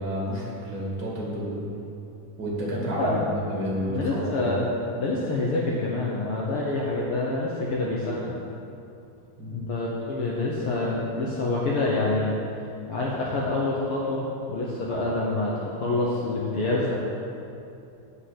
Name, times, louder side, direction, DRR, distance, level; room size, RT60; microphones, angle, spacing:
voice 1, 0.0-1.7 2.4-4.5 9.4-9.7, equal, 40° right, -5 dB, 2.9 m, -30 dB
voice 2, 3.0-3.3 3.9-4.7 5.0-8.4 9.5-12.3 12.9-17.0, left 2 dB, 65° left, -4 dB, 1.4 m, -27 dB
7.7 x 6.4 x 7.6 m, 2.7 s
omnidirectional pair, 3.6 m